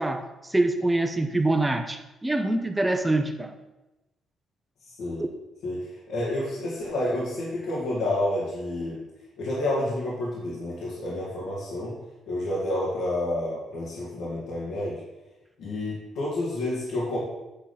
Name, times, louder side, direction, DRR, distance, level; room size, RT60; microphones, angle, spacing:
voice 1, 0.0-3.6 5.2-5.3, right 2 dB, 10° right, 6 dB, 0.8 m, -25 dB
voice 2, 5.6-9.0 9.4-11.9 12.3-15.0 15.6-17.2, left 1 dB, 80° left, -8 dB, 2.3 m, -29 dB
8.9 x 3.9 x 5.7 m, 1.0 s
cardioid pair, 90°, 0 cm